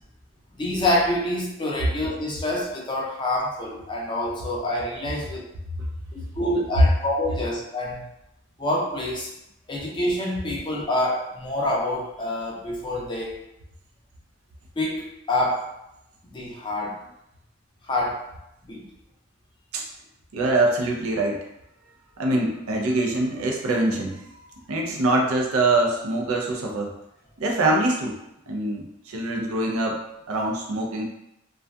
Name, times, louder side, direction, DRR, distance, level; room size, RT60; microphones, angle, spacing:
voice 1, 0.6-5.4 6.1-8.0 8.6-9.3 9.7-13.4 14.8-15.7 16.3-17.0 17.9-18.2 18.6-18.9, left 1 dB, 20° left, -3 dB, 0.4 m, -27 dB
voice 2, 20.3-21.4 22.2-26.9 27.4-28.2 28.5-30.0 30.3-31.0, right 2 dB, 80° right, 1 dB, 0.5 m, -24 dB
2.6 x 2.3 x 2.2 m, 0.85 s
head